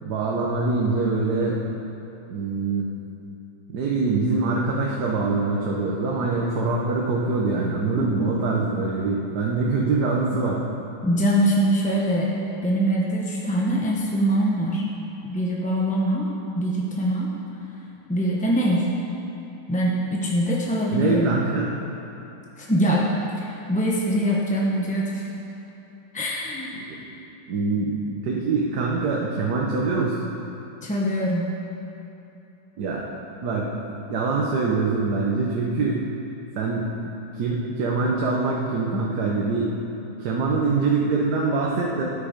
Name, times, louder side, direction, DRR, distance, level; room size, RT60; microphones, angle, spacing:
voice 1, 0.0-1.7 2.3-2.9 3.7-10.6 20.9-21.7 26.8-26.9 27.5-30.2 32.8-33.1 33.4-36.0 36.5-36.9 37.3-39.8 40.2-42.0, right 3 dB, 70° right, -2 dB, 1.5 m, -24 dB
voice 2, 11.0-12.3 12.6-14.9 15.2-17.3 18.1-18.9 19.7-21.3 22.6-23.1 23.4-25.2 26.1-26.7 30.8-31.4, equal, 5° left, -3 dB, 0.6 m, -23 dB
13.0 x 9.2 x 5.1 m, 2.9 s
omnidirectional pair, 1.9 m